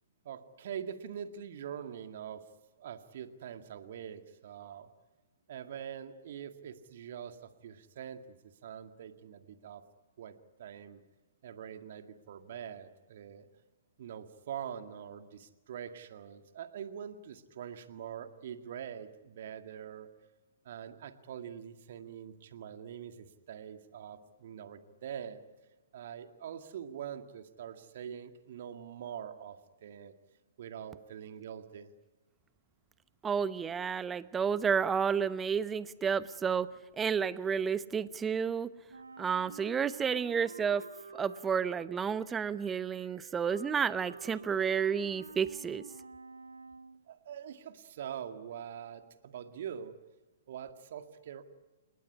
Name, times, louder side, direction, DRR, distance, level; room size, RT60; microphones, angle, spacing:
voice 1, 0.2-2.5 2.8-4.9 5.5-9.8 10.2-11.0 11.4-13.5 14.0-20.1 20.6-25.4 25.9-30.1 30.6-31.9 47.1-50.0 50.5-51.4, right 8 dB, 50° right, 8 dB, 2.0 m, -44 dB
voice 2, 33.2-36.7 37.0-38.7 39.2-40.8 41.1-45.8, right 6 dB, 15° right, 17 dB, 0.9 m, -31 dB
Wind instrument woodwind instrument, 38.9-47.0, right 4 dB, 75° right, 1.5 m, -50 dB
28.0 x 20.0 x 9.9 m, 1.2 s
figure-of-eight pair, 115°, 0 cm